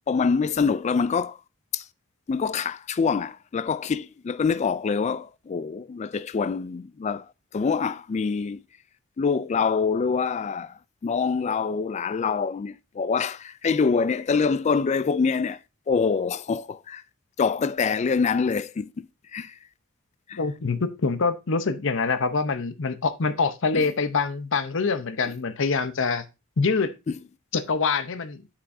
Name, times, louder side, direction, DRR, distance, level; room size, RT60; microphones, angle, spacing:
voice 1, 0.1-1.4 1.7-1.8 2.3-7.3 7.5-8.6 9.2-15.6 15.9-17.0 17.4-19.1 19.3-19.6 20.3-20.4 23.7-23.9 27.1-27.2, left 5 dB, 35° left, 0.3 m, -25 dB
voice 2, 20.4-26.2 26.6-27.0 27.5-28.4, left 4 dB, 65° left, 0.7 m, -25 dB
8.4 x 5.6 x 2.6 m
head